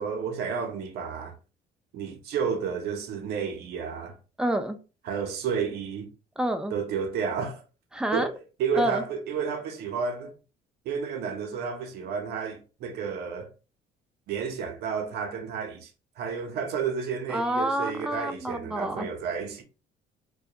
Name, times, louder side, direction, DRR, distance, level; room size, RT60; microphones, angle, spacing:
voice 1, 0.0-1.4 1.9-4.2 5.0-6.1 6.7-7.6 8.1-10.3 10.9-13.5 14.3-19.6, right 6 dB, 75° right, 0.6 m, -31 dB
voice 2, 4.4-4.8 6.4-6.7 7.9-8.3 8.8-9.0 17.3-19.1, right 1 dB, 5° right, 0.3 m, -28 dB
2.2 x 2.2 x 2.7 m
cardioid pair, 110°, 17 cm